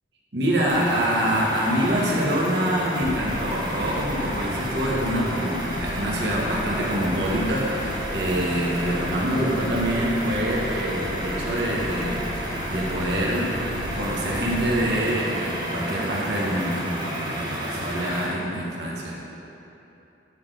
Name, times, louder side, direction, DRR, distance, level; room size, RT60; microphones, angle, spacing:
voice 1, 0.3-13.5 13.9-19.1, equal, 65° right, -4 dB, 1.3 m, -25 dB
sound 1, 0.7-18.3, right 1 dB, 25° right, 1.1 m, -31 dB
sound 2, 3.0-15.0, left 1 dB, 55° left, 0.5 m, -37 dB
9.7 x 3.9 x 5.0 m, 2.9 s
head